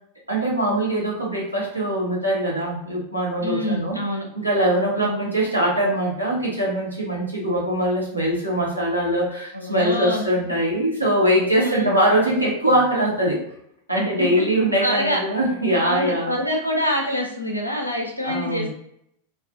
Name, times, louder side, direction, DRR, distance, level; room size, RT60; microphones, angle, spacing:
voice 1, 0.3-4.0 4.3-13.4 13.9-16.3 18.2-18.7, right 1 dB, 90° right, -5 dB, 0.9 m, -22 dB
voice 2, 3.4-4.3 4.9-5.2 9.5-10.2 11.5-11.9 13.9-14.4 14.8-15.2 15.8-18.7, left 1 dB, 90° left, 0 dB, 0.5 m, -26 dB
2.4 x 2.3 x 2.6 m, 0.73 s
figure-of-eight pair, 90°, 0 cm